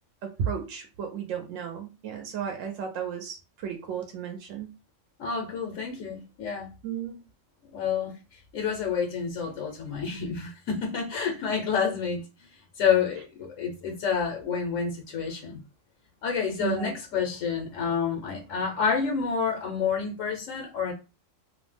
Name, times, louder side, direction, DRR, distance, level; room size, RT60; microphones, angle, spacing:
voice 1, 0.2-4.7 6.8-7.2 16.6-16.9, right 7 dB, 85° right, 1.0 m, -34 dB
voice 2, 5.2-6.7 7.7-8.1 8.5-12.2 12.8-15.6 16.2-20.9, left 6 dB, 85° left, 1.1 m, -28 dB
2.7 x 2.0 x 3.2 m
omnidirectional pair, 1.3 m